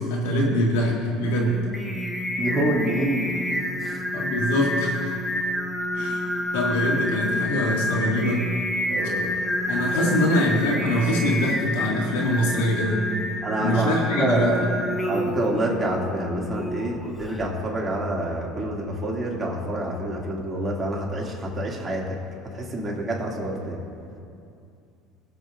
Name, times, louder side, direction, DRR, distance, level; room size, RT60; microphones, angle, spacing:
voice 1, 0.0-1.6 4.1-5.1 5.9-8.5 9.7-13.0 13.6-14.7, left 1 dB, 85° left, -2 dB, 2.0 m, -24 dB
Singing, 1.2-17.5, left 1 dB, 10° left, 1.0 m, -29 dB
voice 2, 2.4-3.3 3.8-4.1 8.9-9.3 9.9-10.2 13.4-14.6 15.1-22.2 22.4-23.8, right 1 dB, 25° right, -3 dB, 2.3 m, -27 dB
21.5 x 7.8 x 2.5 m, 2.5 s
supercardioid pair, 100°, 0 cm